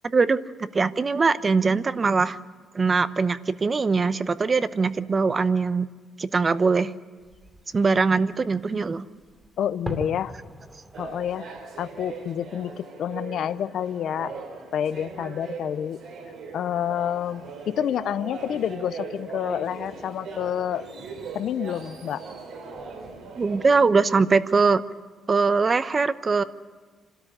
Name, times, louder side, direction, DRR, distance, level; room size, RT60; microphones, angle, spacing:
voice 1, 0.1-2.4 2.7-5.9 6.2-6.9 7.7-9.1 23.4-24.8 25.3-26.4, right 4 dB, 35° right, 13 dB, 0.8 m, -22 dB
Fireworks, 7.2-12.9, right 1 dB, 15° right, 2.7 m, -42 dB
voice 2, 9.6-10.3 11.0-11.5 11.8-14.3 14.7-16.0 16.5-20.9 21.3-22.2, left 9 dB, 70° left, 14 dB, 0.6 m, -28 dB
sound 1, 10.9-23.8, right 4 dB, 75° right, 4.4 m, -39 dB
26.5 x 13.0 x 9.9 m, 1.4 s
cardioid pair, 90°, 0 cm